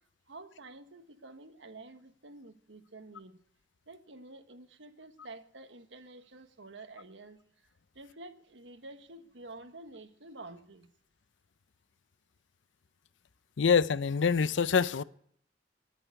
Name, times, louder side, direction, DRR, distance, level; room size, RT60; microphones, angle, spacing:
voice 1, 0.3-3.4 3.9-7.4 7.9-10.9, right 2 dB, 80° right, 1.4 m, -49 dB
voice 2, 13.6-15.0, left 6 dB, 80° left, 0.6 m, -25 dB
19.0 x 9.2 x 8.2 m
head